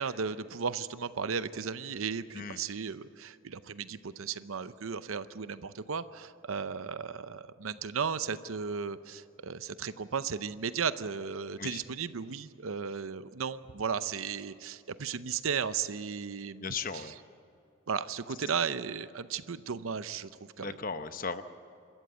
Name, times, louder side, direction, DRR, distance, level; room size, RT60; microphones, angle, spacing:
voice 1, 0.0-17.0 17.9-20.3 20.6-20.7, right 6 dB, 85° right, 14 dB, 0.7 m, -35 dB
voice 2, 16.6-17.1 20.6-21.4, left 5 dB, 45° left, 10 dB, 0.8 m, -36 dB
27.0 x 13.5 x 8.2 m, 2.6 s
head